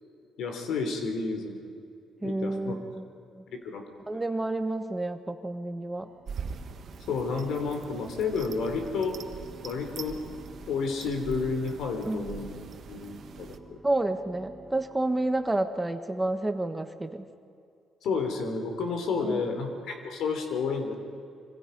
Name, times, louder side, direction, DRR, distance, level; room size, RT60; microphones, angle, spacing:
voice 1, 0.4-1.6 2.2-2.8 3.5-3.8 4.1-4.2 7.1-9.2 9.6-10.2 10.7-12.5 12.9-13.8 18.0-21.0, left 4 dB, 75° left, 5 dB, 3.4 m, -31 dB
voice 2, 2.2-3.0 3.3-3.4 4.1-6.1 12.0-12.3 13.8-17.3 19.2-19.6, right 2 dB, 15° right, 8 dB, 1.4 m, -30 dB
sound 1, 5.9-15.6, right 2 dB, 5° left, 7.1 m, -52 dB
sound 2, 6.3-13.6, right 6 dB, 60° right, 1.4 m, -43 dB
26.0 x 25.5 x 5.3 m, 2.5 s
cardioid pair, 90°, 0 cm